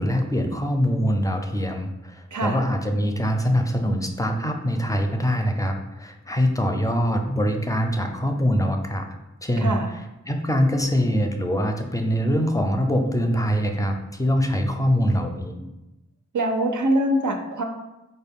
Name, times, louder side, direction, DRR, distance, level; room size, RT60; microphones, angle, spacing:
voice 1, 0.0-9.1 9.4-9.8 10.3-15.7, equal, 10° left, 4 dB, 0.4 m, -23 dB
voice 2, 2.3-2.6 9.6-9.9 16.3-17.6, right 1 dB, 80° right, 3 dB, 0.5 m, -23 dB
4.4 x 2.1 x 3.5 m, 0.98 s
wide cardioid pair, 50°, 30 cm